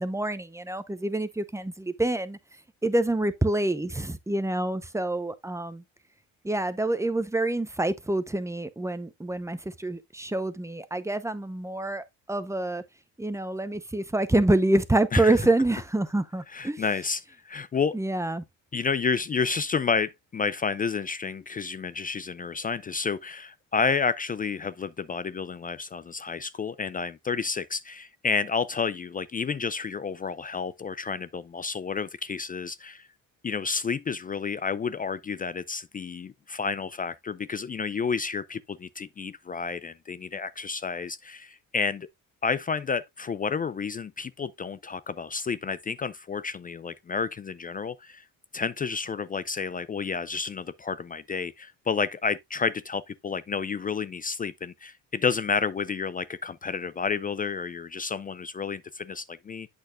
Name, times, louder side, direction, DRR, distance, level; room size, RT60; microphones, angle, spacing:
voice 1, 0.0-2.4 2.8-5.8 6.4-12.8 13.2-16.9 17.9-18.4, right 2 dB, 10° right, 0.8 m, -27 dB
voice 2, 16.5-18.0 18.7-33.1 33.4-42.1 42.4-48.2 48.5-59.7, left 5 dB, 25° left, 0.4 m, -30 dB
8.0 x 6.5 x 2.4 m
cardioid pair, 90°, 35 cm